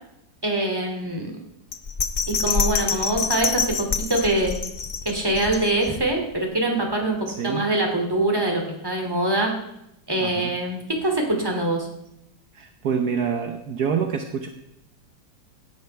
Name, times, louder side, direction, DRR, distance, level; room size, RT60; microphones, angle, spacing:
voice 1, 0.4-1.4 2.3-4.5 5.0-9.5 10.1-11.9, right 2 dB, 15° right, 1 dB, 2.6 m, -24 dB
Bell, 1.7-6.1 6.5-6.6, left 5 dB, 50° left, 0.5 m, -26 dB
voice 2, 7.3-7.7 10.2-10.5 12.5-14.5, right 6 dB, 65° right, 4 dB, 1.4 m, -26 dB
17.0 x 11.0 x 3.4 m, 0.80 s
omnidirectional pair, 1.8 m